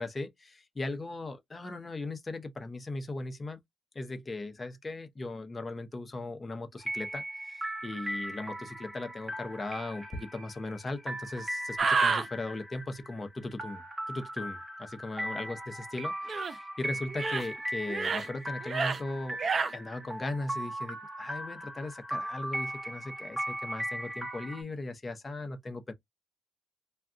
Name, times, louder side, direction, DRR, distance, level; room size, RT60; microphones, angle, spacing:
voice 1, 0.0-3.6 3.9-15.6 15.9-19.4 19.7-25.9, left 2 dB, 25° left, 0.7 m, -38 dB
sound 1, 6.8-24.6, right 1 dB, 15° right, 1.0 m, -38 dB
sound 2, 11.8-12.3 16.3-16.5 17.1-17.5 17.9-18.3 18.6-19.0 19.4-19.7, right 5 dB, 40° right, 0.5 m, -28 dB
2.4 x 2.2 x 3.7 m
cardioid pair, 90°, 0 cm